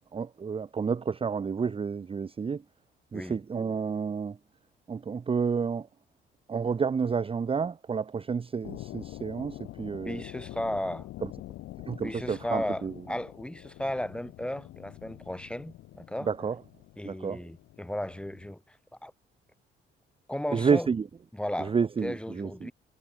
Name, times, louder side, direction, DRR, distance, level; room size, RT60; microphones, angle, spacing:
voice 1, 0.0-2.6 3.1-4.4 4.9-5.9 6.5-10.2 11.9-12.9 16.3-16.6 17.0-17.4 20.5-21.0 21.6-22.7, right 6 dB, 30° right, 0.7 m, -30 dB
sound 1, 8.6-18.5, left 15 dB, 90° left, 4.7 m, -46 dB
voice 2, 10.0-11.1 12.0-16.3 17.0-18.8 19.0-19.1 20.3-20.9 21.3-21.7 22.0-22.7, left 1 dB, 5° left, 2.9 m, -35 dB
cardioid pair, 90°, 20 cm